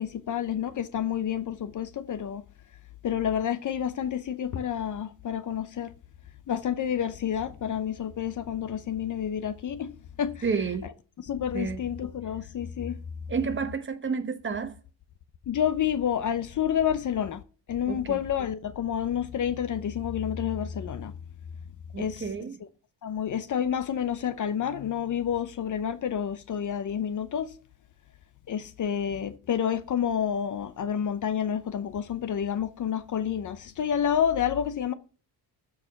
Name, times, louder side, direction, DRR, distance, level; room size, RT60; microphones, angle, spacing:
voice 1, 0.0-2.4 3.0-5.9 6.5-10.4 11.3-13.0 15.5-17.4 17.7-21.1 22.0-22.2 23.0-27.5 28.5-34.9, left 9 dB, 45° left, 0.7 m, -29 dB
voice 2, 10.4-10.9 11.5-11.8 13.3-14.8 17.9-18.2 21.9-22.6, right 5 dB, 25° right, 1.0 m, -30 dB
13.5 x 4.8 x 5.8 m
cardioid pair, 155°, 44 cm